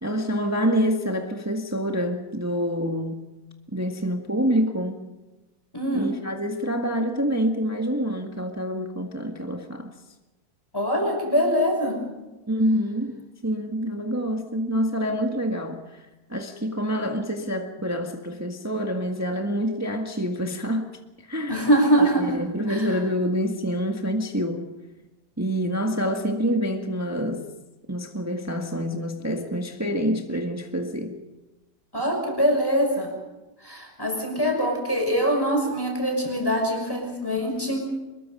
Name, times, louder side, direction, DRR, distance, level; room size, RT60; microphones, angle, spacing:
voice 1, 0.0-3.2 3.7-5.1 5.9-9.9 12.5-20.9 21.2-21.6 22.0-24.7 25.4-27.5 27.9-31.2, equal, 10° right, 1.5 m, -27 dB
voice 2, 5.7-6.1 10.7-12.0 21.5-22.9 31.9-33.1 33.6-37.9, equal, 10° left, 5.9 m, -23 dB
25.5 x 21.5 x 5.5 m
omnidirectional pair, 1.9 m